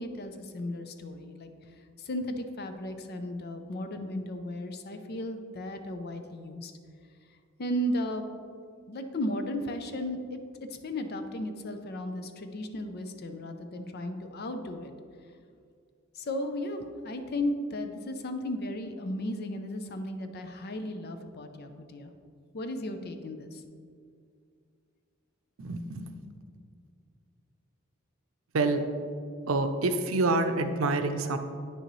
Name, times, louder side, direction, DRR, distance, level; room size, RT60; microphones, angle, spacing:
voice 1, 0.0-1.5 2.0-6.7 7.6-8.3 8.9-10.4 10.8-14.9 16.1-22.1 22.5-23.6, left 1 dB, 50° left, 7 dB, 0.6 m, -35 dB
voice 2, 25.6-26.1 28.5-28.8 29.4-31.4, right 3 dB, 90° right, 8 dB, 0.6 m, -27 dB
9.2 x 6.6 x 3.1 m, 2.3 s
head